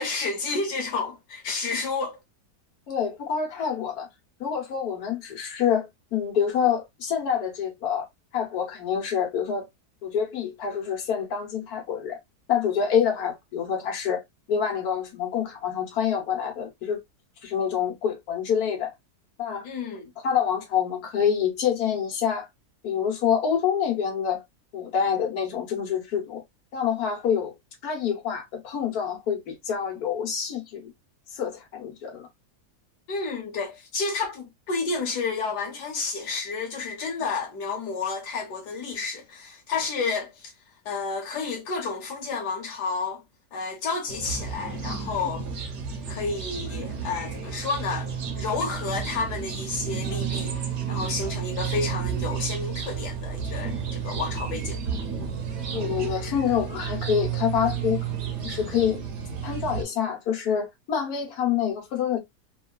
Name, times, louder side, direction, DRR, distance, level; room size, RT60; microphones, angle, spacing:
voice 1, 0.0-2.2 19.6-20.1 33.1-40.5 40.8-43.2 43.5-45.5 46.1-48.1 48.3-50.5 50.9-54.8, left 4 dB, 85° left, 1.4 m, -30 dB
voice 2, 2.9-4.1 4.4-8.0 8.3-9.7 10.0-12.2 12.5-14.2 14.5-17.0 17.4-18.9 19.4-19.6 20.2-22.5 22.8-24.4 24.7-26.4 26.7-27.5 27.8-30.9 31.3-32.3 55.7-58.1 58.4-59.0 59.4-62.2, left 8 dB, 70° left, 1.5 m, -26 dB
sound 1, 44.1-59.8, right 7 dB, 55° right, 0.9 m, -31 dB
3.5 x 2.3 x 2.2 m
omnidirectional pair, 1.7 m